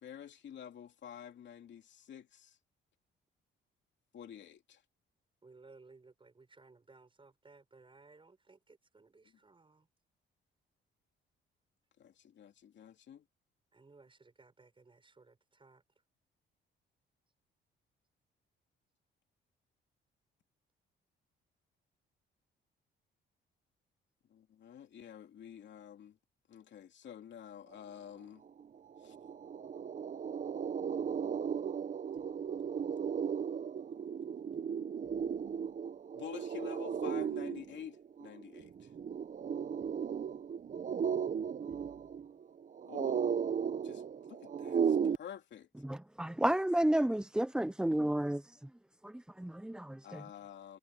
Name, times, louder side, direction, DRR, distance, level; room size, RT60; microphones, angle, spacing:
voice 1, 0.0-2.6 4.1-4.8 12.0-13.2 24.3-26.2 26.5-28.4 29.0-29.1 36.1-38.9 42.8-43.3 43.8-45.7 50.0-50.8, left 9 dB, 65° left, 2.9 m, -49 dB
voice 2, 5.4-9.9 13.7-15.8, right 3 dB, 25° right, 6.4 m, -60 dB
sound 1, 28.6-28.7 29.0-45.2, right 7 dB, 40° right, 0.8 m, -36 dB
voice 3, 45.8-48.4 49.0-50.2, right 1 dB, 5° right, 0.6 m, -32 dB
cardioid pair, 90°, 20 cm